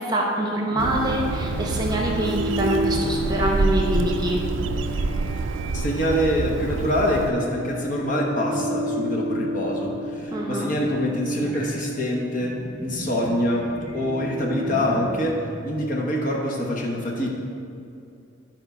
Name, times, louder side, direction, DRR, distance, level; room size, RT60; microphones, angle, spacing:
voice 1, 0.0-4.4 10.3-10.7, right 1 dB, 20° right, 0 dB, 0.9 m, -25 dB
sound 1, 0.7-15.9, equal, ahead, 2.0 m, -32 dB
Bird, 0.8-7.3, right 3 dB, 70° right, 0.4 m, -27 dB
voice 2, 5.7-17.3, equal, 40° left, -1 dB, 1.1 m, -25 dB
11.5 x 4.6 x 5.5 m, 2.6 s
head